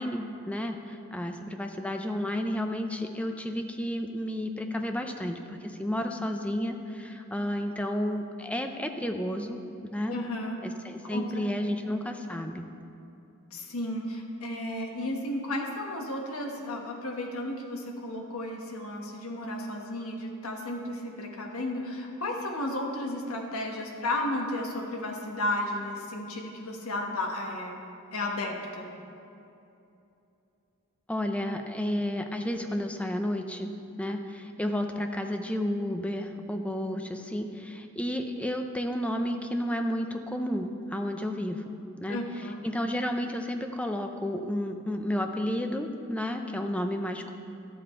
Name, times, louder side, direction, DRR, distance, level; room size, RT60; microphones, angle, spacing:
voice 1, 0.0-9.6 9.9-10.2 10.6-12.7 31.1-33.7 34.0-41.6 42.0-42.2 42.6-47.3, left 1 dB, 5° left, 5 dB, 0.5 m, -31 dB
voice 2, 10.1-10.6 11.1-11.4 13.5-27.8 28.1-28.9 42.1-42.6, left 1 dB, 75° left, 1 dB, 1.3 m, -33 dB
12.5 x 7.7 x 4.4 m, 2.8 s
head